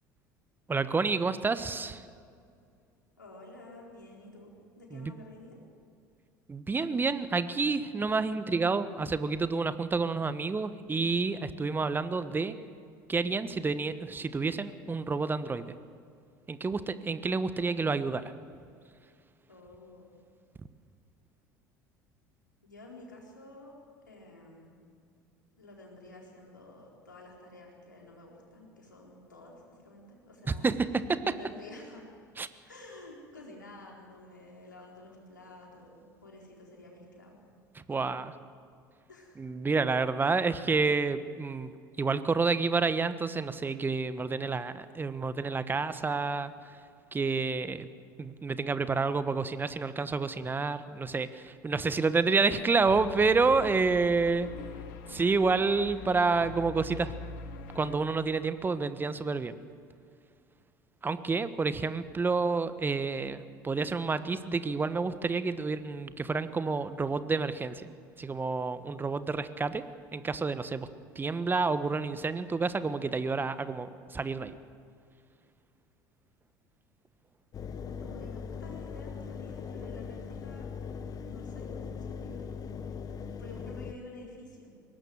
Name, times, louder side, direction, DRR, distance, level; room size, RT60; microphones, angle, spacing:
voice 1, 0.7-2.0 4.9-5.1 6.5-12.5 13.1-15.7 16.5-18.2 30.6-31.2 32.4-32.5 37.9-38.3 39.4-41.7 42.0-46.5 47.1-47.9 48.2-54.5 55.1-57.1 57.7-59.6 61.0-67.9 68.2-69.8 70.1-70.9 71.1-74.5, right 4 dB, 20° right, 13 dB, 1.2 m, -29 dB
voice 2, 3.2-5.6 19.5-20.1 22.6-23.7 24.1-24.8 25.6-30.7 31.3-32.1 32.7-37.4 37.9-38.1 39.1-39.5 54.4-54.7 77.8-80.7 81.2-82.5 83.4-84.7, left 2 dB, 90° left, -1 dB, 4.2 m, -50 dB
sound 1, 52.4-58.0, left 6 dB, 70° left, 1.8 m, -44 dB
Engine, 77.5-83.9, left 6 dB, 40° left, 1.4 m, -40 dB
22.0 x 18.5 x 7.8 m, 2.3 s
figure-of-eight pair, 65°, 10 cm